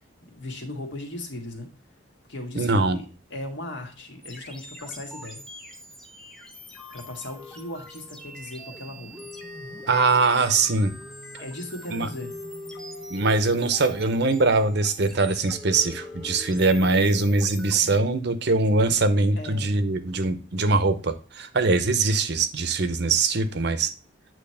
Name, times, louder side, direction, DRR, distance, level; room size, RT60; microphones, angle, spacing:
voice 1, 0.2-1.7 2.3-3.1 3.3-5.4 6.9-9.3 11.4-12.4 19.3-19.7, left 1 dB, 65° left, 3 dB, 1.6 m, -37 dB
voice 2, 2.5-3.0 9.9-10.9 11.9-12.1 13.1-23.9, right 3 dB, 60° right, 11 dB, 0.7 m, -22 dB
sound 1, 4.2-18.0, left 1 dB, 5° left, 0.9 m, -42 dB
8.6 x 3.1 x 5.5 m, 0.35 s
head